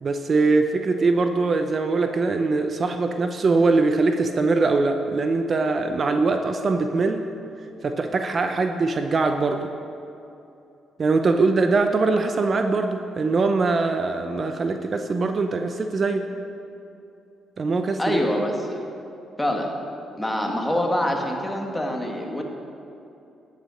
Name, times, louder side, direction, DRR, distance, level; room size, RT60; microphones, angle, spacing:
voice 1, 0.0-7.3 7.8-9.7 11.0-16.3 17.6-18.2, right 3 dB, 45° right, 6 dB, 0.7 m, -22 dB
voice 2, 18.0-18.8 19.4-19.7 20.2-22.4, left 1 dB, 10° left, 1 dB, 1.9 m, -25 dB
12.0 x 8.4 x 6.5 m, 2.7 s
cardioid pair, 75°, 0 cm